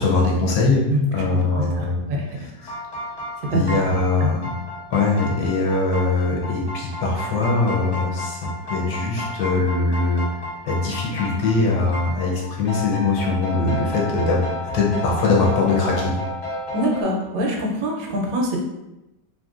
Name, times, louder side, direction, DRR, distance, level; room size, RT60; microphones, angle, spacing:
voice 1, 0.0-2.0 2.4-2.7 3.5-4.5 4.9-10.2 10.6-14.4 14.7-16.1, left 3 dB, 70° left, -2 dB, 1.1 m, -21 dB
voice 2, 0.9-2.4 3.5-3.8 4.2-4.3 16.7-18.6, equal, 90° right, 0 dB, 1.3 m, -24 dB
sound 1, 2.6-17.0, left 1 dB, 50° left, 1.1 m, -32 dB
3.1 x 2.6 x 2.4 m, 0.96 s
omnidirectional pair, 1.9 m